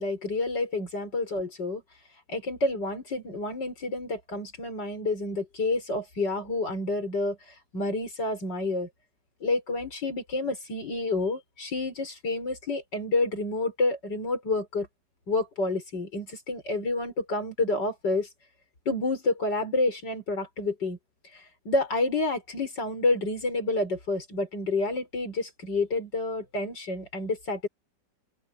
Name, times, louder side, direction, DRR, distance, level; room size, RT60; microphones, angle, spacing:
voice 1, 0.0-1.8 2.3-8.9 9.4-14.9 15.3-18.3 18.9-21.0 21.3-27.7, left 2 dB, 90° left, 6.3 m, -29 dB
open air
omnidirectional pair, 1.8 m